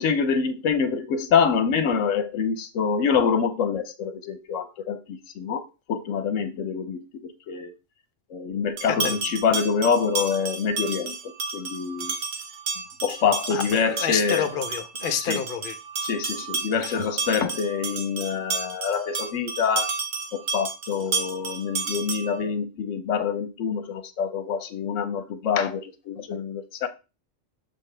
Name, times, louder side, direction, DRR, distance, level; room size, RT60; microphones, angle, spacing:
voice 1, 0.0-7.7 8.3-12.2 13.0-14.5 15.2-15.4 16.0-19.9 20.3-26.9, left 6 dB, 80° left, 1.0 m, -26 dB
voice 2, 8.8-9.2 13.5-15.7 16.7-16.9, left 8 dB, 50° left, 0.9 m, -29 dB
sound 1, 8.8-22.4, right 4 dB, 85° right, 1.5 m, -32 dB
6.7 x 5.5 x 3.3 m
omnidirectional pair, 1.3 m